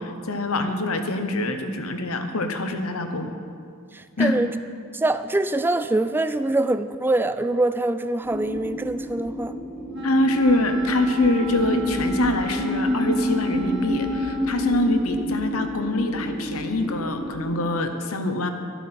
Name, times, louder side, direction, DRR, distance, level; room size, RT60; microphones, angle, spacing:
voice 1, 0.0-3.3 4.2-4.4 10.0-18.5, left 1 dB, 80° left, 6 dB, 1.0 m, -25 dB
voice 2, 3.9-4.5 4.9-9.6, right 2 dB, 10° right, 11 dB, 0.3 m, -24 dB
sound 1, 8.2-17.6, left 1 dB, 30° left, 1.8 m, -28 dB
Wind instrument woodwind instrument, 9.9-14.5, right 2 dB, 60° right, 1.4 m, -35 dB
13.0 x 8.3 x 5.8 m, 2.3 s
head